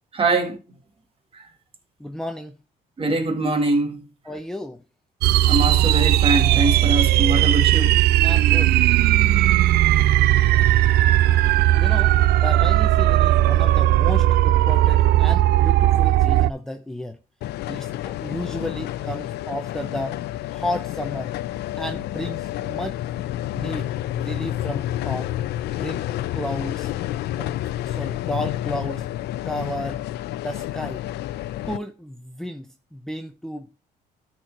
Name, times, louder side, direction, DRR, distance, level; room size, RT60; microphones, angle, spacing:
voice 1, 0.1-0.6 1.3-1.4 3.0-4.0 5.5-8.0, right 2 dB, 35° right, 2.0 m, -23 dB
voice 2, 2.0-2.6 4.2-4.8 8.2-8.7 11.8-17.2 17.7-20.2 20.5-21.3 21.8-23.0 23.5-25.3 25.7-26.1 26.3-26.9 27.4-27.6 27.8-29.1 29.4-30.0 30.4-31.0 31.6-33.7, equal, 5° left, 0.8 m, -33 dB
sound 1, 5.2-16.5, right 14 dB, 70° right, 0.4 m, -17 dB
sound 2, 17.4-31.8, left 13 dB, 75° left, 0.6 m, -29 dB
13.0 x 4.6 x 4.7 m
cardioid pair, 110°, 17 cm